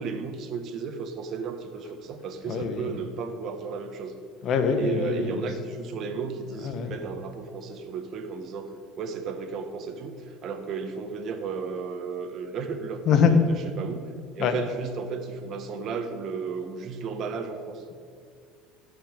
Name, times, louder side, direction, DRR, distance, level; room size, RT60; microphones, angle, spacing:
voice 1, 0.0-4.1 4.7-17.8, right 5 dB, 50° right, 7 dB, 1.6 m, -34 dB
voice 2, 2.4-2.9 4.4-5.5 6.6-7.0 13.0-13.3 14.4-14.5, left 6 dB, 50° left, 7 dB, 1.7 m, -24 dB
14.5 x 6.0 x 8.9 m, 2.2 s
supercardioid pair, 100°, 0 cm